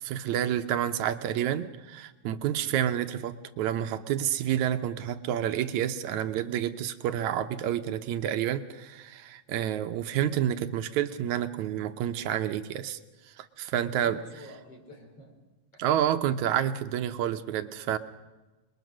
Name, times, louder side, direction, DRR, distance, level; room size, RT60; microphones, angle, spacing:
voice 1, 0.0-13.0 13.4-14.2 15.8-18.0, right 10 dB, 80° right, 9 dB, 2.2 m, -29 dB
voice 2, 14.0-15.4, left 1 dB, 50° left, 2 dB, 5.6 m, -48 dB
28.0 x 22.0 x 6.3 m, 1.2 s
omnidirectional pair, 3.3 m